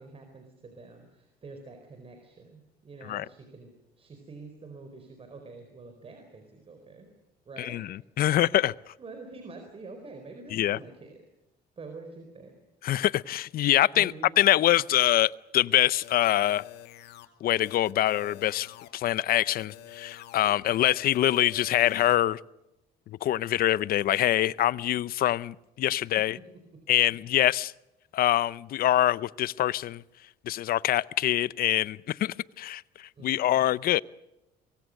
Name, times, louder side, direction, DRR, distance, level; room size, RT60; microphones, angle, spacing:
voice 1, 0.0-7.1 7.4-8.5 9.0-11.2 11.8-12.5 13.9-14.5 26.7-26.8 33.2-33.6, right 3 dB, 35° right, 5 dB, 4.4 m, -47 dB
voice 2, 7.6-8.7 10.5-10.8 12.8-16.6 17.4-22.4 23.1-26.4 26.9-27.7 28.1-30.0 30.4-34.0, left 13 dB, 60° left, 19 dB, 0.7 m, -25 dB
sound 1, 16.0-17.3 17.7-18.9 19.3-20.5 20.9-22.2, left 12 dB, 75° left, 2.4 m, -47 dB
24.0 x 23.5 x 6.5 m, 0.95 s
cardioid pair, 110°, 17 cm